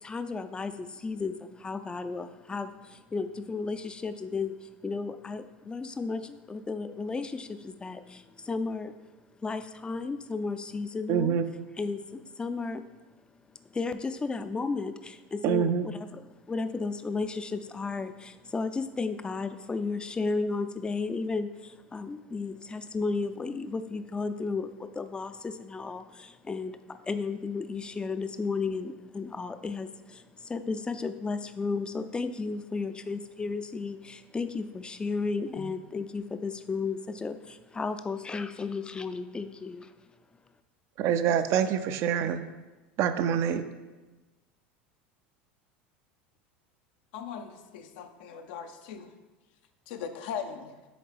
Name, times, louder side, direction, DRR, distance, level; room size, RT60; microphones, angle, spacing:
voice 1, 0.0-8.9 9.4-11.4 11.8-12.8 13.7-39.9, left 4 dB, 15° left, 10 dB, 0.4 m, -34 dB
voice 2, 11.1-11.5 15.4-15.9 41.0-42.5 43.0-43.6, right 8 dB, 55° right, 10 dB, 0.4 m, -26 dB
voice 3, 47.1-49.1 49.9-50.7, left 7 dB, 70° left, 7 dB, 0.6 m, -39 dB
7.8 x 3.6 x 3.4 m, 1.2 s
hypercardioid pair, 90°, 6 cm